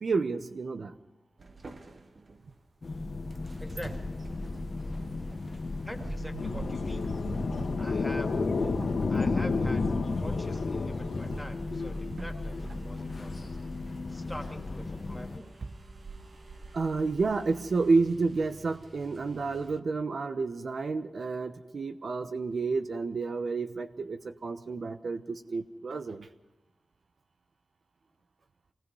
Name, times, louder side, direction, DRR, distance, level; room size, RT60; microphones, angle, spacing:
voice 1, 0.0-0.9 12.2-12.3 16.7-26.3, right 4 dB, 65° right, 9 dB, 1.0 m, -30 dB
sound 1, 1.4-19.8, right 3 dB, 45° right, 1.4 m, -48 dB
sound 2, 2.8-15.4, left 2 dB, 45° left, 1.2 m, -37 dB
voice 2, 3.6-4.1 5.8-7.1 7.8-8.3 8.6-8.8 9.1-9.8 10.2-13.4 14.1-15.6, equal, ahead, 3 dB, 2.5 m, -44 dB
sound 3, 6.4-11.4, left 4 dB, 75° left, 2.3 m, -30 dB
26.0 x 19.0 x 5.5 m, 1.0 s
wide cardioid pair, 135°, 0 cm